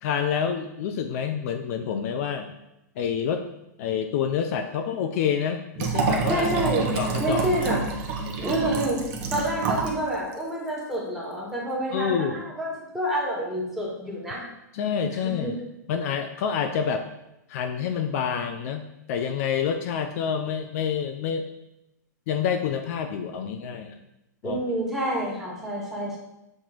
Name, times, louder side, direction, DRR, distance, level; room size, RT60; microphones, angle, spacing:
voice 1, 0.0-2.6 3.0-3.5 3.8-6.5 6.9-7.7 11.9-12.4 14.7-15.6 15.9-17.1 17.5-21.5 22.3-24.0 24.4-24.6, left 7 dB, 55° left, 6 dB, 0.4 m, -28 dB
Liquid, 5.8-10.0 10.3-10.4, right 5 dB, 45° right, 0.8 m, -27 dB
voice 2, 6.3-6.9 7.2-7.8 8.4-14.4 15.2-15.6 24.4-26.2, right 1 dB, 5° right, -4 dB, 1.3 m, -28 dB
7.2 x 3.0 x 2.5 m, 0.88 s
hypercardioid pair, 125°, 10 cm